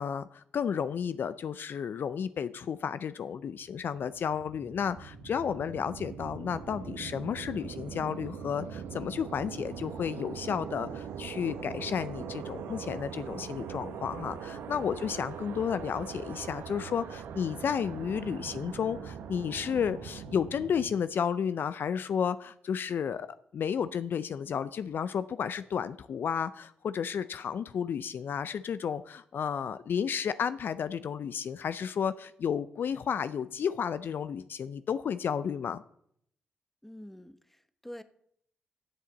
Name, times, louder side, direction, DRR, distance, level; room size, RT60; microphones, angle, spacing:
voice 1, 0.0-23.3 23.5-35.8, left 7 dB, 60° left, 14 dB, 0.4 m, -32 dB
sound 1, 3.8-20.9, right 7 dB, 75° right, 0.9 m, -41 dB
voice 2, 36.8-38.0, equal, 5° left, 11 dB, 1.0 m, -47 dB
14.0 x 7.5 x 4.0 m, 0.68 s
hypercardioid pair, 45°, 4 cm